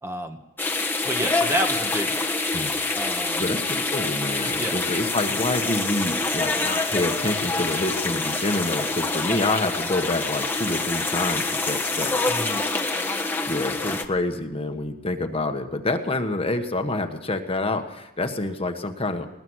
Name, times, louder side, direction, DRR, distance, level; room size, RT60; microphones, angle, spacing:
voice 1, 0.0-0.4 1.0-2.3 2.9-3.5 4.6-4.8 12.3-12.6, equal, 15° right, 5 dB, 1.5 m, -30 dB
sound 1, 0.6-14.0, left 3 dB, 10° left, 1.3 m, -26 dB
voice 2, 3.4-12.2 13.4-19.3, left 2 dB, 25° left, 6 dB, 1.5 m, -27 dB
20.5 x 20.0 x 6.4 m, 0.99 s
head